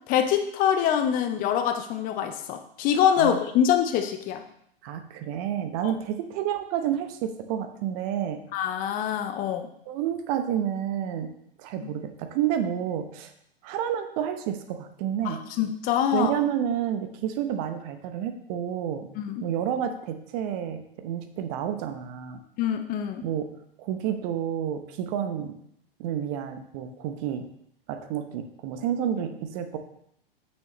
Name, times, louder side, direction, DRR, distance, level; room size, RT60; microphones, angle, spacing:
voice 1, 0.1-4.4 5.8-5.9 8.5-9.7 11.8-11.9 15.2-16.3 19.2-19.4 22.6-23.2, left 9 dB, 30° left, 7 dB, 0.6 m, -25 dB
voice 2, 4.8-8.4 9.9-11.3 11.6-13.3 13.6-15.4 16.1-19.1 19.4-22.4 23.2-23.5 23.8-25.5 26.0-27.4 27.9-29.8, right 10 dB, 40° right, 8 dB, 0.9 m, -29 dB
8.6 x 6.4 x 3.1 m, 0.72 s
figure-of-eight pair, 100°, 29 cm